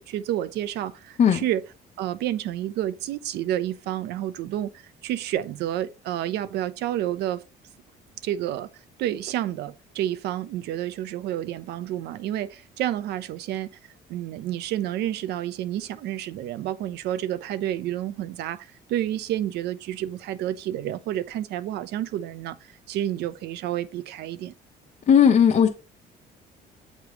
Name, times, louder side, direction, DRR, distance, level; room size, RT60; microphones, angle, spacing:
voice 1, 0.0-1.6 2.0-7.4 8.2-8.7 9.0-13.7 14.1-24.5, right 12 dB, 75° right, 0.6 m, -30 dB
voice 2, 25.1-25.7, left 8 dB, 40° left, 0.9 m, -16 dB
8.2 x 3.1 x 4.9 m
cardioid pair, 110°, 17 cm